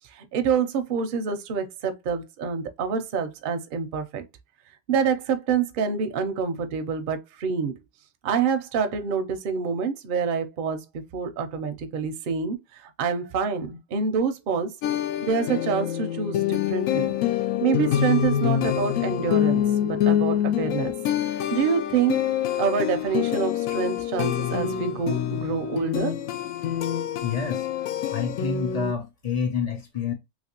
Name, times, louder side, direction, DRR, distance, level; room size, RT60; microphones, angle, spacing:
voice 1, 0.1-4.2 4.9-7.7 8.2-10.8 11.1-14.7 15.2-17.1 17.6-20.9 21.3-22.1 22.6-26.1, right 6 dB, 55° right, 0.6 m, -27 dB
sound 1, 14.8-28.9, left 10 dB, 90° left, 1.0 m, -26 dB
voice 2, 27.2-27.7 28.1-30.1, left 6 dB, 55° left, 0.4 m, -28 dB
3.2 x 2.9 x 2.8 m
omnidirectional pair, 1.4 m